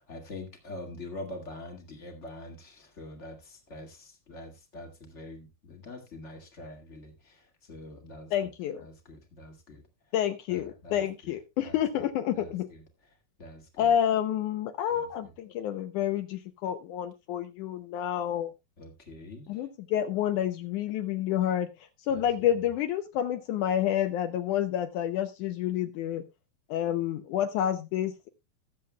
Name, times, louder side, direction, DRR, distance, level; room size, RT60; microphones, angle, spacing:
voice 1, 0.0-8.5 8.8-9.8 10.5-11.3 11.6-11.8 12.3-12.8 13.4-13.9 14.9-15.3 18.8-19.7 22.1-22.7, left 1 dB, 30° left, 1.3 m, -45 dB
voice 2, 8.3-8.8 10.1-12.7 13.8-18.5 19.5-21.7 22.1-26.2 26.7-28.3, left 10 dB, 80° left, 1.9 m, -29 dB
19.5 x 7.6 x 2.2 m
omnidirectional pair, 4.2 m